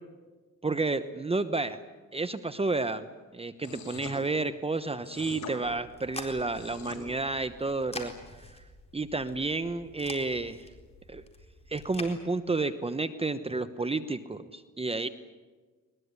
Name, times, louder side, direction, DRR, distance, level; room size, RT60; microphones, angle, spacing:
voice 1, 0.6-1.8 2.1-3.1 3.3-8.1 8.4-8.6 8.9-10.7 11.1-11.2 11.7-15.1, right 3 dB, 20° right, 12 dB, 1.0 m, -31 dB
sound 1, 3.6-4.2 5.0-5.5 6.4-7.0, left 5 dB, 65° left, 6.9 m, -43 dB
sound 2, 5.6-12.1, left 2 dB, 20° left, 4.3 m, -46 dB
21.5 x 21.0 x 9.7 m, 1.3 s
cardioid pair, 90°, 30 cm